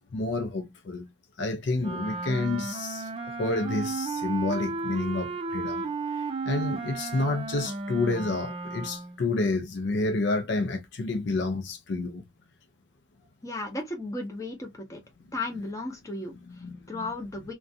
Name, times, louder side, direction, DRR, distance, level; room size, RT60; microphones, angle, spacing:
voice 1, 0.1-1.1 1.4-3.1 3.4-5.8 6.5-12.2 16.5-17.1, left 2 dB, 65° left, 0.5 m, -29 dB
Wind instrument woodwind instrument, 1.8-9.2, right 3 dB, 30° right, 0.4 m, -34 dB
voice 2, 13.4-15.0 15.3-16.3 16.9-17.5, left 2 dB, 15° left, 0.7 m, -34 dB
2.5 x 2.2 x 2.5 m
head